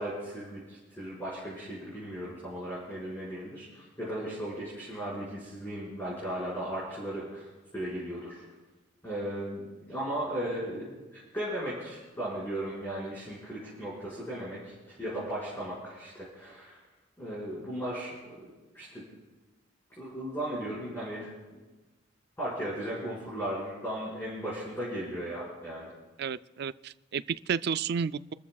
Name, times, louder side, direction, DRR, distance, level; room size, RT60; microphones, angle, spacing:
voice 1, 0.0-7.5 7.7-8.4 9.0-16.8 17.2-19.0 20.0-21.6 22.4-25.9, right 1 dB, 10° left, -9 dB, 5.2 m, -36 dB
voice 2, 26.2-28.3, right 6 dB, 55° right, 15 dB, 0.4 m, -32 dB
28.0 x 14.0 x 2.4 m, 1.2 s
head